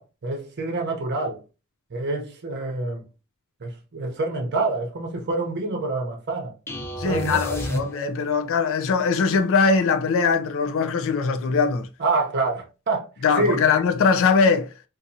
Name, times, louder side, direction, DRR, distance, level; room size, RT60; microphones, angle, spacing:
voice 1, 0.0-1.4 1.9-3.1 3.6-6.5 7.0-7.4 12.0-13.1 13.4-13.6, right 3 dB, 50° right, 0.7 m, -26 dB
sound 1, 6.7-8.4, equal, 10° left, 0.8 m, -31 dB
voice 2, 7.0-11.9 13.2-14.7, left 5 dB, 65° left, 0.4 m, -21 dB
3.9 x 2.5 x 2.6 m
head